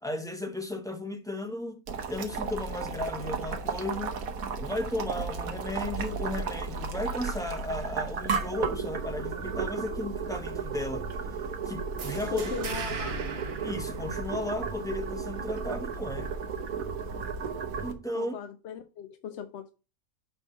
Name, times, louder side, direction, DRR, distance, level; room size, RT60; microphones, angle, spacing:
voice 1, 0.0-1.8 2.1-4.2 4.6-11.1 11.7-12.5 13.6-16.3 17.8-18.3, left 2 dB, 5° left, 0.5 m, -35 dB
Boiling, 1.9-17.9, right 5 dB, 75° right, 1.4 m, -34 dB
sound 1, 12.0-14.7, right 4 dB, 50° right, 1.0 m, -39 dB
voice 2, 12.3-13.2 18.1-19.7, left 7 dB, 65° left, 0.8 m, -39 dB
5.3 x 4.5 x 6.2 m
omnidirectional pair, 1.5 m